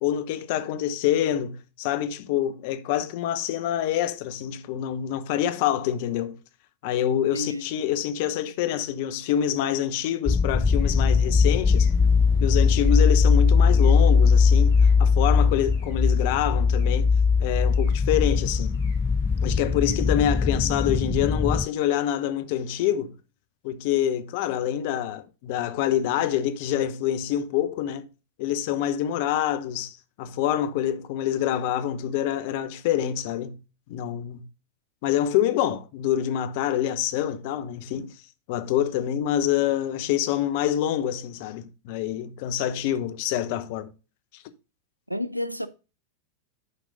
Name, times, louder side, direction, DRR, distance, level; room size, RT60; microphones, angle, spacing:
voice 1, 0.0-6.4 6.8-11.9 12.4-17.1 17.4-18.8 19.4-23.1 23.6-28.1 28.4-33.6 33.9-34.4 35.0-38.1 38.5-43.9, left 11 dB, 50° left, 0.9 m, -26 dB
voice 2, 7.3-7.6 45.1-45.7, left 1 dB, 90° right, 0.6 m, -30 dB
sound 1, 10.3-21.7, left 5 dB, 15° left, 0.3 m, -20 dB
sound 2, 10.5-20.1, left 2 dB, 70° left, 4.7 m, -54 dB
10.5 x 5.0 x 3.9 m
figure-of-eight pair, 90°, 0 cm